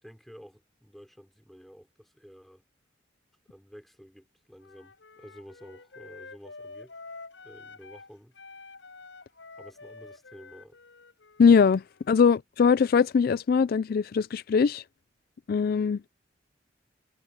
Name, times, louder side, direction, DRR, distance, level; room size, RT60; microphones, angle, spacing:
voice 1, 0.0-2.6 3.5-6.9 7.4-8.3 9.6-10.8, equal, ahead, 4.0 m, -51 dB
Wind instrument woodwind instrument, 4.6-8.1 8.3-12.2, left 3 dB, 85° left, 5.8 m, -48 dB
voice 2, 11.4-14.8 15.5-16.0, left 6 dB, 55° left, 0.3 m, -21 dB
head